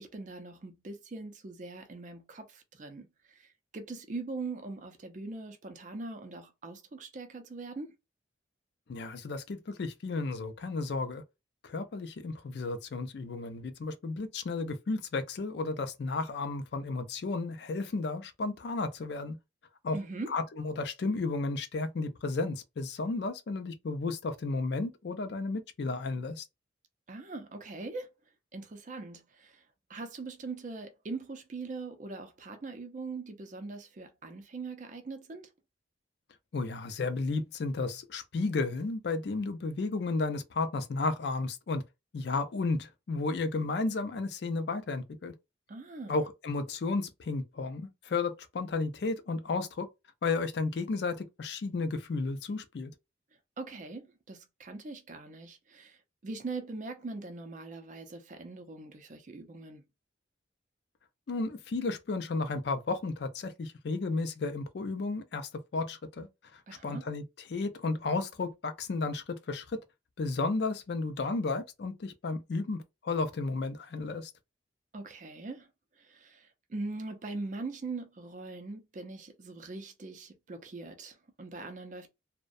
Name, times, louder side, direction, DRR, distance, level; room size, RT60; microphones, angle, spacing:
voice 1, 0.0-7.9 19.9-20.4 27.1-28.1 28.5-29.6 29.9-35.5 45.7-46.2 53.6-59.8 66.7-67.1 74.9-75.7 76.0-82.1, right 3 dB, 40° right, 0.4 m, -41 dB
voice 2, 8.9-11.2 11.6-19.4 19.8-20.0 20.3-26.4 36.5-41.8 42.1-45.3 46.1-49.9 50.2-52.9 61.3-67.2 67.5-69.8 70.2-74.3, left 3 dB, 60° left, 0.4 m, -33 dB
2.4 x 2.1 x 2.5 m
head